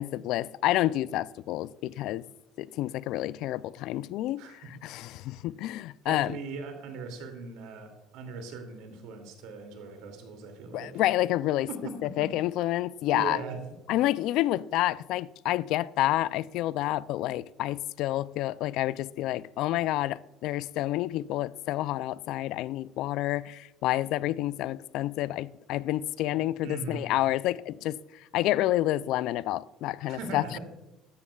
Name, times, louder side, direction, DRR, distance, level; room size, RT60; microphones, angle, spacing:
voice 1, 0.0-2.2 2.6-6.4 10.7-11.7 12.2-13.4 13.9-30.6, left 15 dB, 70° left, 0.3 m, -29 dB
voice 2, 4.4-4.7 6.0-11.0 11.7-12.3 13.1-13.6 26.6-27.1 30.1-30.6, right 4 dB, 75° right, 2.5 m, -39 dB
13.5 x 12.0 x 2.3 m
supercardioid pair, 80°, 0 cm